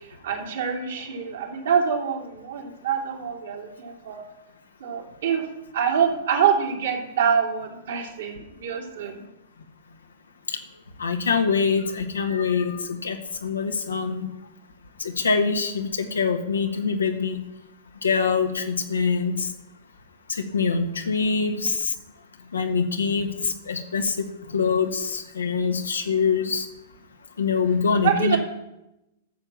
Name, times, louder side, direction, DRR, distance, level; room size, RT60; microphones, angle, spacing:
voice 1, 0.0-4.2 4.8-5.4 5.7-9.2 28.0-28.4, right 7 dB, 65° right, 0 dB, 2.9 m, -25 dB
voice 2, 11.0-14.3 15.0-17.4 18.0-19.5 20.3-21.9 22.5-26.7 27.4-28.4, left 5 dB, 75° left, 5 dB, 1.5 m, -24 dB
13.5 x 7.1 x 7.1 m, 0.93 s
figure-of-eight pair, 100°, 0 cm